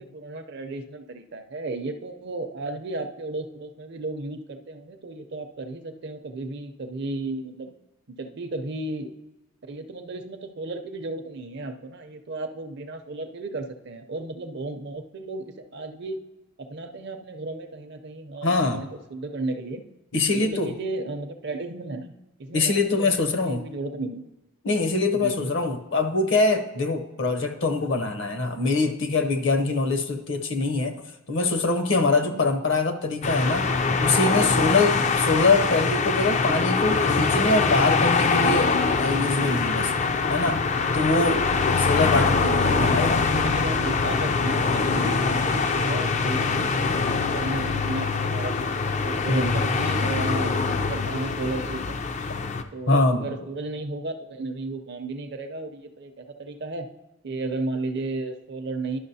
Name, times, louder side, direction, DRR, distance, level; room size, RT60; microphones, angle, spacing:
voice 1, 0.0-7.7 8.1-9.1 9.7-16.2 16.6-19.8 20.3-22.1 22.4-24.3 25.1-25.5 32.2-32.4 42.6-48.7 49.0-52.0 52.7-56.9 57.2-59.0, right 2 dB, 50° right, 7 dB, 0.5 m, -34 dB
voice 2, 18.4-18.8 20.1-20.7 22.5-23.6 24.6-31.0 31.3-33.7 34.0-39.9 40.3-40.6 40.9-43.2 49.3-49.6 52.9-53.3, left 3 dB, 55° left, 7 dB, 0.7 m, -24 dB
sound 1, 33.2-52.6, left 4 dB, 30° left, 0.3 m, -23 dB
11.0 x 6.0 x 2.7 m, 1.0 s
head